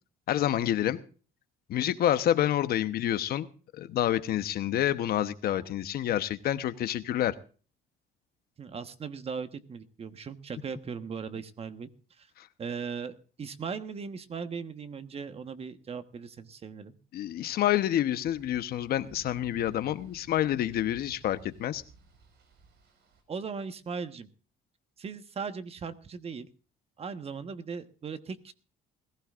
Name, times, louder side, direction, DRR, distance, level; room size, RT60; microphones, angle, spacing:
voice 1, 0.3-1.0 1.7-3.5 3.7-7.3 12.4-12.5 17.1-21.8, left 12 dB, 65° left, 12 dB, 1.0 m, -28 dB
voice 2, 8.6-12.3 12.6-17.0 23.3-24.3 25.0-26.5 27.0-28.5, right 5 dB, 35° right, 10 dB, 1.3 m, -38 dB
sound 1, 18.2-23.2, right 5 dB, 75° right, 5.1 m, -55 dB
21.0 x 15.5 x 2.5 m, 0.38 s
cardioid pair, 110°, 17 cm